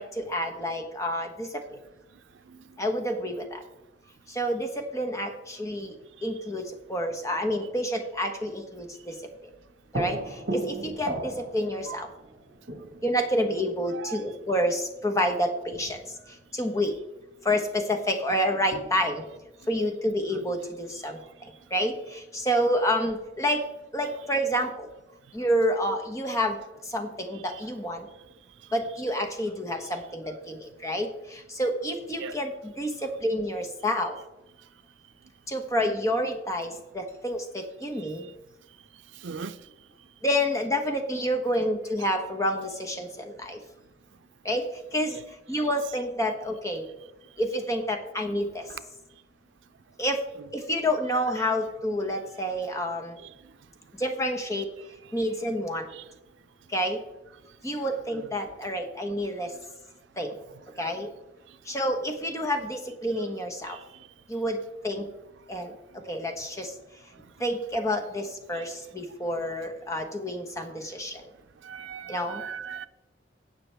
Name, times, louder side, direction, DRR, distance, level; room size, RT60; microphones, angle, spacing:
voice 1, 0.0-1.6 2.8-3.6 4.3-5.9 6.2-6.6 6.9-9.2 9.9-12.1 13.0-16.0 16.5-16.9 17.4-19.2 19.7-23.6 23.9-24.9 25.3-26.6 26.9-28.1 28.7-34.2 35.5-38.3 40.2-43.6 44.4-44.6 44.9-45.2 45.5-46.8 47.4-48.6 50.0-50.2 50.5-53.1 54.0-54.7 55.1-55.9 56.7-57.0 57.6-59.5 60.2-60.4 60.8-61.1 61.7-63.8 64.3-64.6 64.8-65.1 65.5-65.7 66.1-66.7 67.4-71.2 72.1-72.4, equal, 15° left, 1.2 m, -28 dB
sound 1, 9.4-9.5 9.9-14.4 15.3-15.4 15.7-16.4 18.7-19.5, right 2 dB, 60° right, 1.4 m, -37 dB
voice 2, 13.9-14.2 20.3-20.4 32.2-32.4 38.0-38.1 39.2-39.6 45.1-45.2 45.6-45.7 48.7-48.8 53.2-53.3 55.9-56.0 58.1-58.3 63.7-63.8 68.5-68.7 71.6-72.9, right 6 dB, 90° right, 0.5 m, -39 dB
17.0 x 5.9 x 3.4 m
head